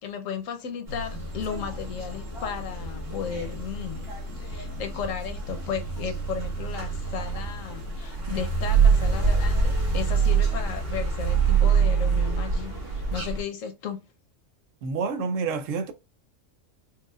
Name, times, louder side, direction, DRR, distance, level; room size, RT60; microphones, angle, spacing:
voice 1, 0.0-4.1 4.4-14.0, left 7 dB, 85° left, 1.1 m, -35 dB
sound 1, 0.9-13.4, right 5 dB, 50° right, 1.4 m, -26 dB
voice 2, 14.8-15.9, right 5 dB, 80° right, 1.0 m, -28 dB
4.7 x 2.2 x 2.3 m
omnidirectional pair, 1.3 m